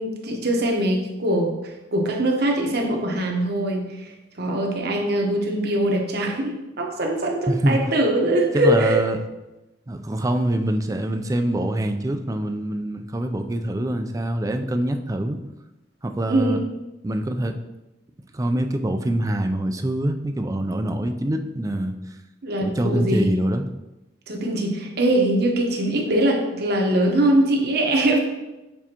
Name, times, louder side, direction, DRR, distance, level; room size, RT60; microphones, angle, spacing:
voice 1, 0.0-1.5 1.9-4.1 4.4-9.0 16.3-16.6 22.4-23.3 24.3-28.2, right 1 dB, 60° right, 1 dB, 1.1 m, -22 dB
voice 2, 7.5-7.8 8.5-9.2 9.9-15.4 16.0-16.6 17.0-17.6 18.3-21.9 22.6-23.7, right 1 dB, 20° right, 6 dB, 0.4 m, -24 dB
7.2 x 4.7 x 2.9 m, 1.0 s
head